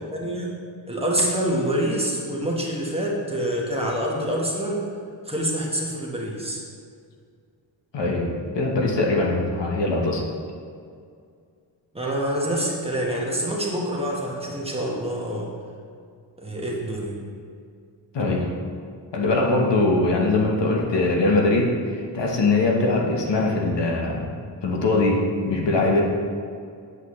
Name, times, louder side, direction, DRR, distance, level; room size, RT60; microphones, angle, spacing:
voice 1, 0.1-0.5 0.9-4.8 5.2-6.6 11.9-15.5 16.4-17.2, right 1 dB, 15° right, -3 dB, 1.3 m, -26 dB
voice 2, 7.9-8.3 8.5-10.2 18.1-18.5 19.1-24.3 24.6-26.0, left 2 dB, 70° left, -1 dB, 1.3 m, -22 dB
8.3 x 7.9 x 3.2 m, 2.2 s
wide cardioid pair, 120°, 44 cm